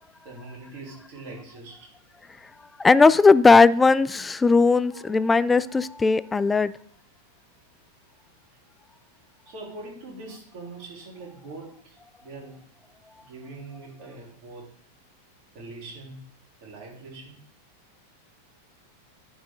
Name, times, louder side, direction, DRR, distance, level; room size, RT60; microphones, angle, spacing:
voice 1, 0.2-1.9 4.9-5.2 9.4-12.6 13.2-14.7 15.5-16.2 16.6-17.4, right 2 dB, 45° right, -3 dB, 3.3 m, -42 dB
voice 2, 2.8-6.7, left 4 dB, 10° left, 17 dB, 0.3 m, -18 dB
11.0 x 4.7 x 3.8 m, 0.62 s
figure-of-eight pair, 90°, 0 cm